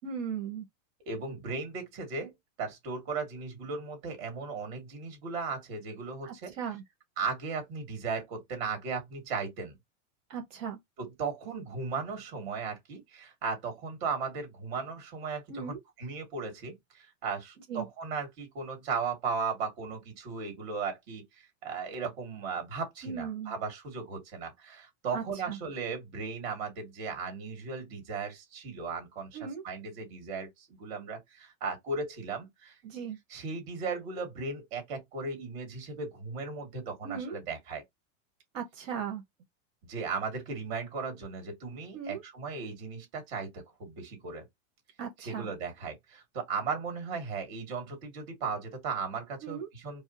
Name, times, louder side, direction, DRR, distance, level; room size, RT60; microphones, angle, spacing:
voice 1, 0.0-0.6 6.2-6.8 10.3-10.8 15.5-15.8 17.7-17.9 23.0-23.6 25.1-25.6 29.3-29.6 32.8-33.2 37.0-37.4 38.5-39.2 41.9-42.2 45.0-45.5 49.4-49.7, right 7 dB, 65° right, 1.4 m, -37 dB
voice 2, 1.1-2.3 2.6-6.5 7.2-9.8 11.0-32.8 33.3-37.8 39.8-44.5 45.3-50.0, right 4 dB, 45° right, 2.1 m, -36 dB
4.7 x 2.0 x 2.8 m
supercardioid pair, 170°, 41 cm